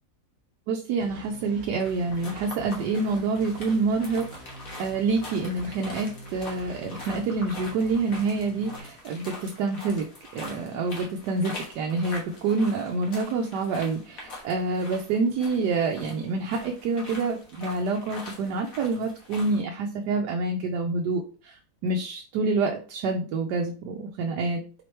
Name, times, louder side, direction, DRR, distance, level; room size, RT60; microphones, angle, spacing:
voice 1, 0.7-10.1 10.3-21.5 21.8-24.6, right 3 dB, 85° right, 3 dB, 1.2 m, -27 dB
sound 1, 1.0-8.8, equal, 30° right, 1.1 m, -45 dB
sound 2, 1.7-19.6, left 2 dB, 60° left, 1.6 m, -43 dB
4.6 x 3.0 x 3.1 m, 0.38 s
omnidirectional pair, 1.7 m